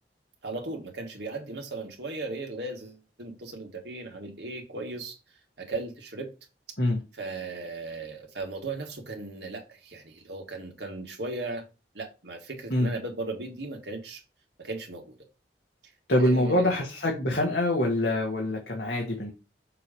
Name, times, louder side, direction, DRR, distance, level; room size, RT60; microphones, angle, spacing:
voice 1, 0.4-5.2 5.6-6.3 7.1-11.7 11.9-14.2 14.6-15.2 16.2-16.8, right 2 dB, 75° right, 1.9 m, -37 dB
voice 2, 16.1-19.3, left 1 dB, 65° left, 1.7 m, -25 dB
6.7 x 3.1 x 5.4 m
head